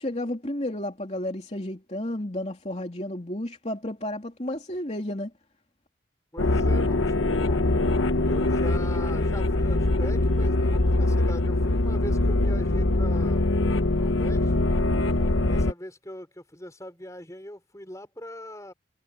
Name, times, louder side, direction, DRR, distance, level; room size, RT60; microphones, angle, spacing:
voice 1, 0.0-5.3 15.0-15.4, left 1 dB, 35° left, 3.1 m, -32 dB
voice 2, 6.3-7.8 8.2-14.6 15.4-18.7, left 1 dB, 15° left, 4.3 m, -41 dB
sound 1, 6.4-15.7, left 2 dB, 90° left, 1.2 m, -23 dB
head